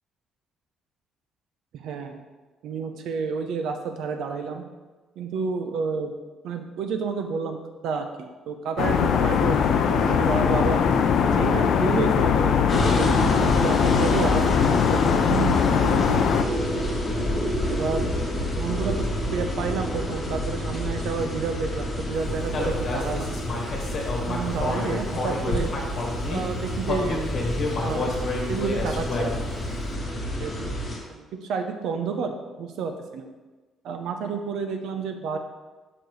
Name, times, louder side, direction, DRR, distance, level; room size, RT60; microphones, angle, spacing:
voice 1, 1.8-2.2 2.6-4.6 5.2-6.1 6.4-7.6 7.8-10.8 11.2-16.1 17.7-18.1 18.5-19.1 19.3-23.4 24.3-25.7 26.3-27.2 27.7-28.2 28.5-29.4 30.3-30.8 31.1-33.3 33.8-35.4, right 5 dB, 70° right, 6 dB, 0.7 m, -30 dB
sound 1, 8.8-16.4, left 7 dB, 60° left, 0.5 m, -21 dB
sound 2, 12.7-31.0, equal, 20° left, 1.7 m, -29 dB
Human voice, 22.5-26.4 26.8-29.6, left 3 dB, 45° left, 1.5 m, -29 dB
7.0 x 5.9 x 3.2 m, 1.3 s
cardioid pair, 155°, 0 cm